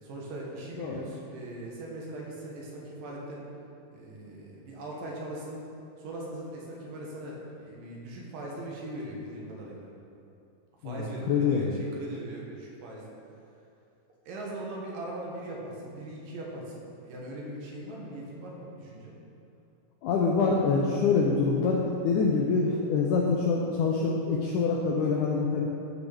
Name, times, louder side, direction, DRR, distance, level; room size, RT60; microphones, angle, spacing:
voice 1, 0.0-3.4 3.9-5.6 6.0-9.9 10.8-13.1 14.3-19.2, right 1 dB, 70° right, -3 dB, 2.8 m, -40 dB
voice 2, 10.8-11.7 20.0-25.8, left 4 dB, 85° left, -1 dB, 1.7 m, -25 dB
14.0 x 6.0 x 3.5 m, 2.6 s
omnidirectional pair, 4.3 m